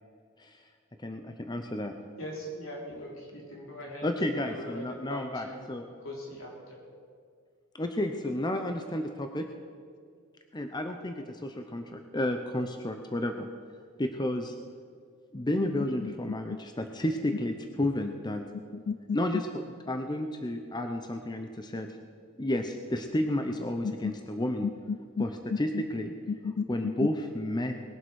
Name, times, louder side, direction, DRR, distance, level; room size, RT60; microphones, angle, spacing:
voice 1, 1.0-1.9 4.0-5.8 7.7-9.5 10.5-13.5 14.0-14.5 15.3-18.4 19.1-21.9 22.4-24.7 25.2-26.1 26.7-27.7, left 1 dB, 20° left, 5 dB, 0.7 m, -31 dB
voice 2, 2.2-4.1 4.4-5.7 6.0-6.8, equal, 70° left, -2 dB, 3.7 m, -41 dB
voice 3, 18.7-19.4 23.8-24.1 24.6-25.3 25.5-25.8 26.3-27.1, left 5 dB, 50° left, 13 dB, 0.4 m, -33 dB
20.0 x 7.7 x 6.3 m, 2.1 s
head